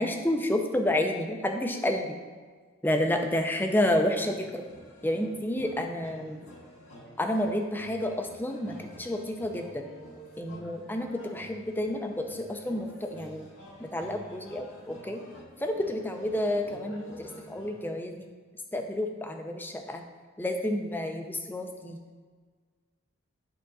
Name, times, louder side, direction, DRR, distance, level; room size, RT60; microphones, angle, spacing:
voice 1, 0.0-2.2 2.8-4.6 5.0-6.4 7.2-9.9 10.4-13.4 13.8-15.2 15.6-18.3 18.7-20.0 20.4-22.0, left 1 dB, 10° left, 4 dB, 0.5 m, -30 dB
sound 1, 3.6-17.9, equal, 85° left, 1.6 m, -49 dB
11.5 x 3.8 x 3.9 m, 1.5 s
head